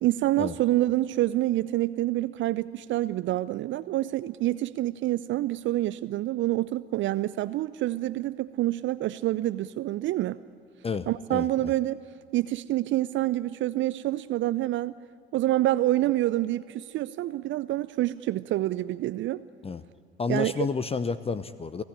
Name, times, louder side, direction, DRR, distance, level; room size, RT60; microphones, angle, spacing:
voice 1, 0.0-10.4 11.1-12.0 12.3-14.9 15.3-19.4 20.3-20.7, right 15 dB, 40° right, 16 dB, 0.6 m, -27 dB
voice 2, 10.8-11.7 19.6-19.8 20.2-21.8, left 5 dB, 20° left, 15 dB, 0.8 m, -30 dB
29.5 x 17.5 x 10.0 m, 2.5 s
figure-of-eight pair, 60°, 30 cm